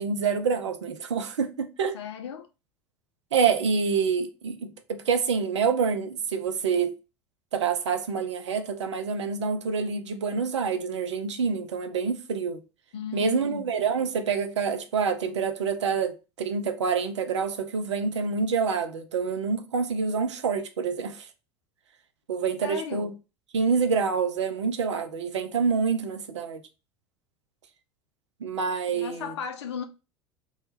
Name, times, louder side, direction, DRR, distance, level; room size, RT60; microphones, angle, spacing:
voice 1, 0.0-2.0 3.3-7.0 7.5-12.6 13.1-21.3 22.3-23.1 23.5-26.6 28.4-29.3, right 5 dB, 80° right, 0.4 m, -27 dB
voice 2, 1.9-2.5 12.9-13.7 22.6-23.1 28.9-29.8, left 7 dB, 70° left, 0.4 m, -35 dB
2.2 x 2.1 x 3.0 m
figure-of-eight pair, 75°, 15 cm